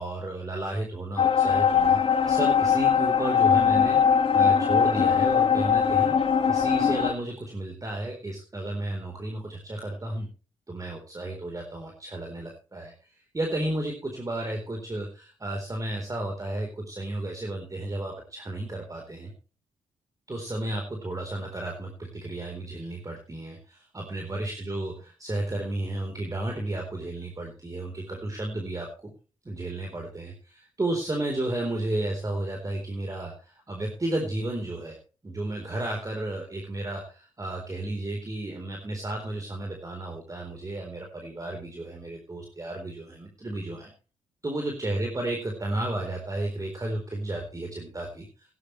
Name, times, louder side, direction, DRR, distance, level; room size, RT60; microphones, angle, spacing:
voice 1, 0.0-2.0 2.3-4.0 4.3-6.1 6.5-10.3 10.7-19.3 20.3-28.9 29.4-35.0 35.2-43.9 44.4-48.5, right 1 dB, 25° right, 2 dB, 4.0 m, -33 dB
sound 1, 1.2-7.1, left 7 dB, 45° left, 2.1 m, -21 dB
16.5 x 11.5 x 3.2 m, 0.35 s
cardioid pair, 70°, 13 cm